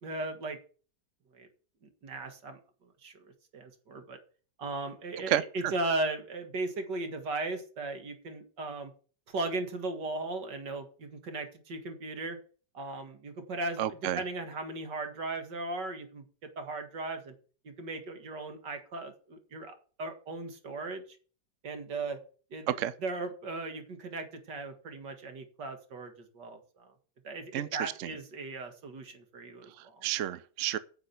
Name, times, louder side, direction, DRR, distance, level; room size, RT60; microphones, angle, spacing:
voice 1, 0.0-0.6 1.3-1.5 2.0-4.2 4.6-8.9 9.3-12.4 12.7-16.2 16.6-17.3 17.6-21.2 21.6-22.2 22.5-26.9 27.2-30.1, right 2 dB, 80° right, 2.5 m, -37 dB
voice 2, 13.8-14.2 22.8-22.9 27.5-27.9 30.0-30.8, right 12 dB, 60° right, 0.9 m, -30 dB
10.0 x 6.4 x 8.1 m
omnidirectional pair, 1.8 m